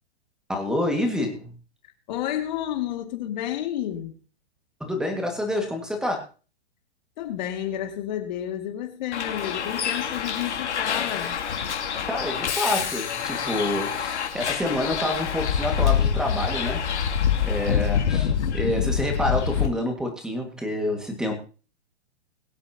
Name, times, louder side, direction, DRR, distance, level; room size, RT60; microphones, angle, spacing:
voice 1, 0.5-1.6 4.8-6.2 12.1-16.8 17.4-21.3, left 1 dB, ahead, 3 dB, 2.0 m, -28 dB
voice 2, 2.1-4.2 7.2-11.4, left 11 dB, 40° left, 5 dB, 2.3 m, -30 dB
Bus, 9.1-19.7, left 8 dB, 90° left, 2.9 m, -26 dB
22.0 x 8.1 x 2.9 m, 0.35 s
hypercardioid pair, 160°, 33 cm